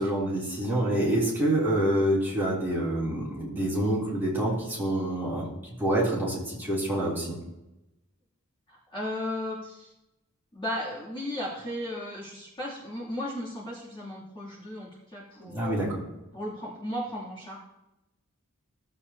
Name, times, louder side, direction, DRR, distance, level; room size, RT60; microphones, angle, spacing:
voice 1, 0.0-5.5 5.8-7.4 15.4-16.0, right 1 dB, 10° right, -7 dB, 3.3 m, -27 dB
voice 2, 8.7-9.9 10.5-17.6, left 1 dB, 20° left, -7 dB, 2.8 m, -36 dB
16.5 x 7.8 x 2.9 m, 0.93 s
head